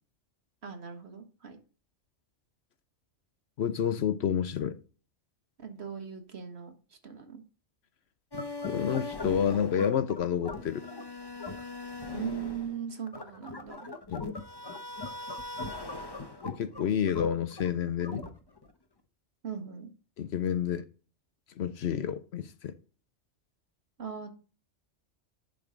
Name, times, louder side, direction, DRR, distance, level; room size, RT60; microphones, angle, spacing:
voice 1, 0.6-1.6 5.6-7.4 12.1-13.9 19.4-19.9 24.0-24.3, right 7 dB, 60° right, 1.7 m, -39 dB
voice 2, 3.6-4.8 8.6-10.8 14.1-14.3 16.4-18.3 20.2-20.9 21.6-22.8, left 8 dB, 65° left, 0.9 m, -29 dB
sound 1, 8.3-18.7, left 3 dB, 20° left, 0.9 m, -39 dB
11.0 x 3.9 x 4.9 m
omnidirectional pair, 1.2 m